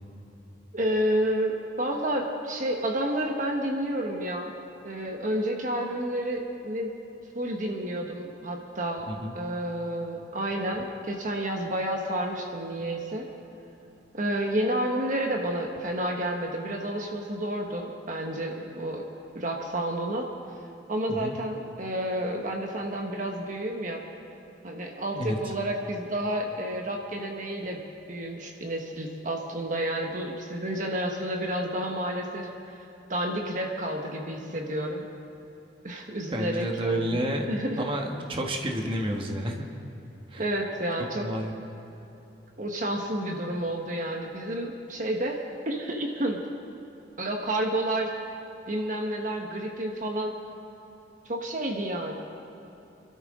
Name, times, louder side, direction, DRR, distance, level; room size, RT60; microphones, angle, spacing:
voice 1, 0.7-4.5 4.8-6.9 7.3-9.1 9.3-13.3 14.1-19.1 19.3-20.3 20.9-24.0 24.6-27.8 28.1-35.0 35.8-37.9 40.3-41.2 42.6-46.4 47.2-48.1 48.7-50.3 51.2-52.1, right 1 dB, 45° right, 1 dB, 1.3 m, -30 dB
voice 2, 36.3-37.5 37.8-39.7 40.3-40.4 41.2-41.5, right 1 dB, 30° right, 1 dB, 1.4 m, -30 dB
26.5 x 12.5 x 3.7 m, 3.0 s
head